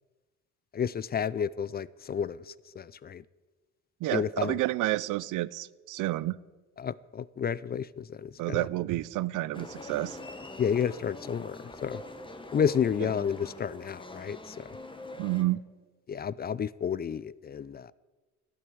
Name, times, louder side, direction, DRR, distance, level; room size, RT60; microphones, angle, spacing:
voice 1, 0.7-3.2 4.1-4.6 6.8-8.7 10.6-12.0 12.5-14.7 16.1-17.9, left 7 dB, 30° left, 0.4 m, -31 dB
voice 2, 4.0-6.4 8.4-10.2 15.2-15.6, right 17 dB, 85° right, 0.5 m, -30 dB
sound 1, 9.5-15.4, left 2 dB, 15° left, 1.4 m, -44 dB
12.5 x 8.9 x 7.9 m
cardioid pair, 90°, 30 cm